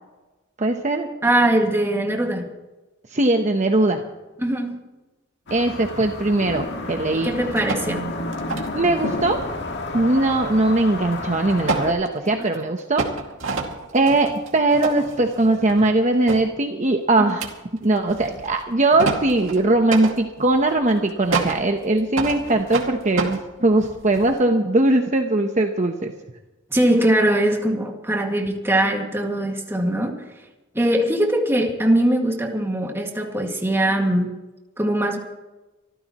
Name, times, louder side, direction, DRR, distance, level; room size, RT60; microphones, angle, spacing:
voice 1, 0.6-1.1 3.1-4.0 5.5-7.3 8.7-9.4 9.9-13.1 13.9-17.4 17.8-26.1, right 2 dB, 40° right, 4 dB, 1.0 m, -20 dB
voice 2, 1.2-2.5 4.4-4.8 7.1-8.1 12.4-12.5 17.2-17.3 26.7-30.2 30.7-34.3 34.8-35.2, right 1 dB, 10° right, 1 dB, 2.1 m, -21 dB
sound 1, 5.5-11.9, left 2 dB, 60° left, 1.9 m, -30 dB
sound 2, 7.5-8.0 8.3-8.8 11.1-11.2 11.5-12.6 13.0-16.0 16.3-16.5 17.3-24.4, right 4 dB, 85° right, 2.3 m, -29 dB
25.0 x 14.5 x 3.1 m, 1.1 s
head